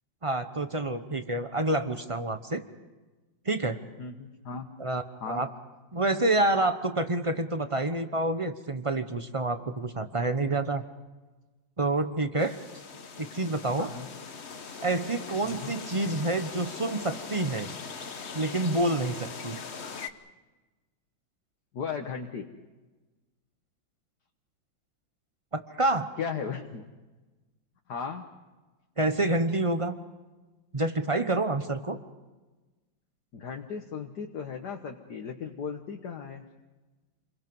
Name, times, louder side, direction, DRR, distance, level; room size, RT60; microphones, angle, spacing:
voice 1, 0.2-2.6 3.4-3.8 4.8-5.5 5.9-10.8 11.8-12.6 13.2-13.9 14.8-17.7 18.3-19.6 25.5-26.1 29.0-30.0 30.7-32.0, right 2 dB, 30° right, 9 dB, 0.6 m, -28 dB
voice 2, 4.0-4.7 5.2-5.4 13.8-14.1 15.4-15.7 21.7-22.5 26.2-26.8 27.9-28.2 33.3-36.4, left 6 dB, 60° left, 3 dB, 1.7 m, -36 dB
sound 1, 12.4-20.1, left 5 dB, 40° left, 1.2 m, -41 dB
29.0 x 23.0 x 5.4 m, 1.2 s
omnidirectional pair, 2.1 m